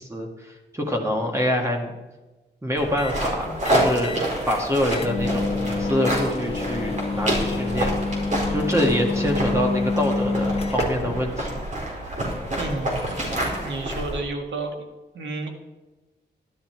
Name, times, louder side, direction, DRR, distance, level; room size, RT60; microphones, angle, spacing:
voice 1, 0.0-1.9 2.6-7.9 8.5-11.6, equal, 15° right, 1 dB, 1.9 m, -26 dB
sound 1, 2.8-14.2, right 1 dB, 40° right, 4.2 m, -28 dB
sound 2, 3.0-3.2 3.6-4.3 4.6-4.7 4.9-11.2, left 3 dB, 35° left, 1.4 m, -28 dB
voice 2, 12.6-13.0 13.3-14.7 15.1-15.5, right 2 dB, 85° right, 3 dB, 2.0 m, -31 dB
12.0 x 11.5 x 4.6 m, 1.1 s
wide cardioid pair, 100°, 18 cm